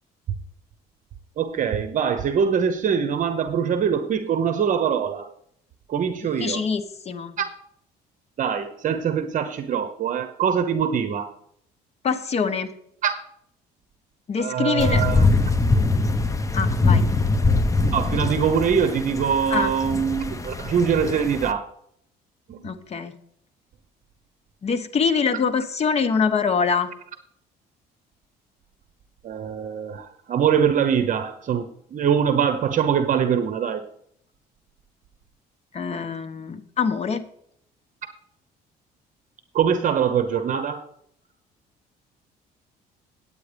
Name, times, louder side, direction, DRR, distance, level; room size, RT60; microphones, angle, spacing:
voice 1, 1.4-5.3 5.9-6.6 7.4-7.5 8.4-11.3 13.0-13.1 14.4-15.2 17.9-21.7 22.5-22.6 29.2-33.9 39.5-40.9, right 7 dB, 50° right, 10 dB, 0.9 m, -23 dB
voice 2, 6.4-7.4 12.0-12.7 14.3-15.0 16.5-17.0 19.5-19.7 22.6-23.1 24.6-26.9 35.7-37.3, left 5 dB, 40° left, 9 dB, 1.2 m, -24 dB
sound 1, 14.8-21.5, left 3 dB, 20° left, 0.9 m, -22 dB
9.5 x 8.8 x 5.1 m, 0.68 s
cardioid pair, 110°, 17 cm